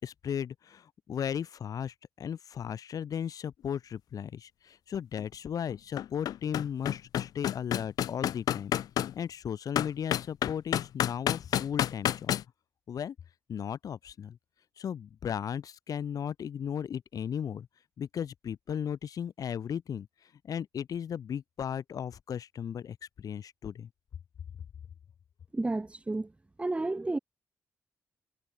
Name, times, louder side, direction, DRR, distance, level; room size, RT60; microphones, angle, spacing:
voice 1, 0.0-8.7 9.1-12.3 12.9-13.2 13.5-14.4 14.8-17.7 18.0-20.1 20.4-23.9, left 8 dB, 70° left, 5.6 m, -36 dB
sound 1, 5.2-5.3 5.7-9.1 9.8-12.4, left 11 dB, 85° left, 0.7 m, -29 dB
voice 2, 25.5-26.3 26.6-27.2, right 2 dB, 20° right, 1.3 m, -31 dB
cardioid pair, 90°, 6 cm